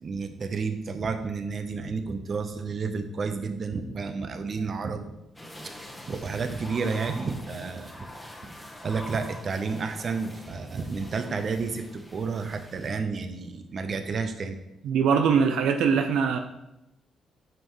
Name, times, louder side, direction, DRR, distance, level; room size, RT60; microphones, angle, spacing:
voice 1, 0.0-5.1 5.6-8.1 8.8-14.6, right 4 dB, 45° right, 8 dB, 0.8 m, -31 dB
sound 1, 5.4-13.0, left 1 dB, 10° left, 1.2 m, -44 dB
voice 2, 14.8-16.4, right 6 dB, 85° right, 5 dB, 0.5 m, -22 dB
9.0 x 5.5 x 3.2 m, 0.91 s
cardioid pair, 90°, 0 cm